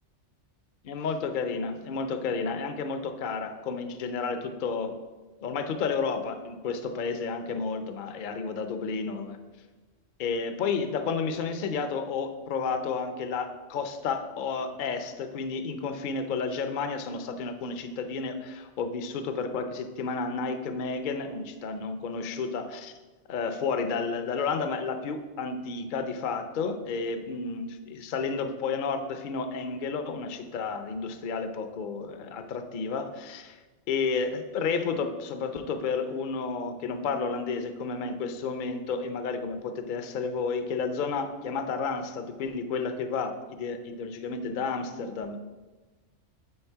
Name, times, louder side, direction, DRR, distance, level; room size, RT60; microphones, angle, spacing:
voice 1, 0.8-4.9 5.4-9.4 10.2-22.9 23.3-33.6 33.9-45.4, left 5 dB, 55° left, 7 dB, 0.6 m, -31 dB
8.8 x 4.2 x 4.5 m, 1.3 s
omnidirectional pair, 1.3 m